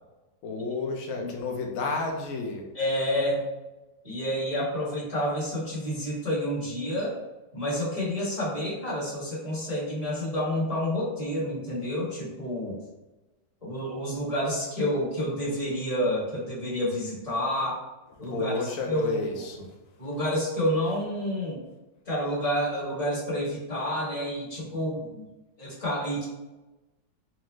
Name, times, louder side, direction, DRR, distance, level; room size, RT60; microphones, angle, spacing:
voice 1, 0.4-2.7 18.2-19.7, left 3 dB, 65° left, 2 dB, 0.9 m, -31 dB
voice 2, 2.7-3.4 4.0-7.2 7.5-12.8 13.6-17.8 18.2-19.2 20.0-21.6 22.0-25.3 25.6-26.2, equal, 20° left, -8 dB, 1.2 m, -29 dB
4.1 x 2.4 x 3.1 m, 1.1 s
omnidirectional pair, 1.9 m